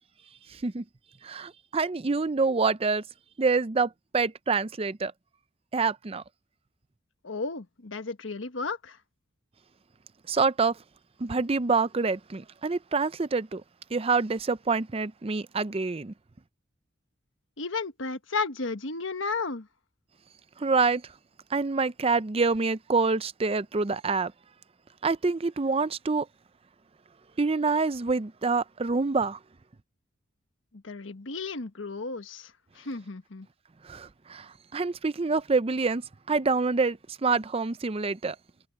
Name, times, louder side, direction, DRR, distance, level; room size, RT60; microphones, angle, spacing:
voice 1, 0.5-0.8 1.2-3.0 3.4-5.1 5.7-6.2 10.3-10.8 11.2-13.6 13.9-16.1 20.6-21.0 21.5-24.3 25.0-26.3 27.4-29.4 33.8-38.4, right 4 dB, 30° right, 0.5 m, -26 dB
voice 2, 7.2-9.0 17.6-19.7 30.7-33.5, left 4 dB, 80° left, 1.3 m, -33 dB
head